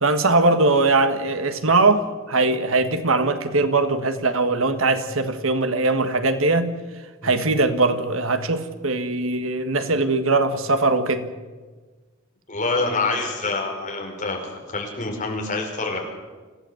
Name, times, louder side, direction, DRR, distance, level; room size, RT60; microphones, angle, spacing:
voice 1, 0.0-6.8 7.2-11.3, right 3 dB, 75° right, 9 dB, 1.7 m, -21 dB
voice 2, 12.5-16.0, left 3 dB, 35° left, 0 dB, 5.3 m, -26 dB
26.5 x 16.0 x 7.9 m, 1.3 s
head